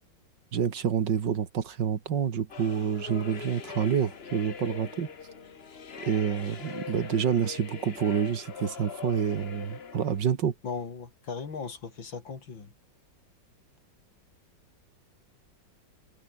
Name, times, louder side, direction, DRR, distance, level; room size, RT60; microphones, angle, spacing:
voice 1, 0.5-5.1 6.0-10.5, right 8 dB, 70° right, 2.2 m, -28 dB
sound 1, 2.5-10.2, left 6 dB, 40° left, 1.3 m, -42 dB
voice 2, 10.6-12.7, left 5 dB, 85° left, 3.8 m, -37 dB
omnidirectional pair, 2.0 m